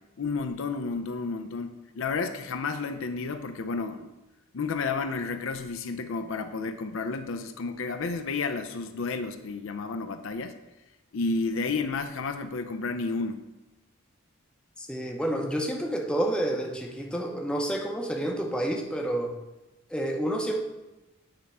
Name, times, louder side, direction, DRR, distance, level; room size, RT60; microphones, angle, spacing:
voice 1, 0.0-4.1 4.5-10.6 11.1-13.4, left 4 dB, 60° left, 8 dB, 0.5 m, -31 dB
voice 2, 14.8-19.4 19.9-20.6, right 1 dB, 5° left, 1 dB, 0.7 m, -29 dB
8.7 x 3.5 x 5.4 m, 1.0 s
head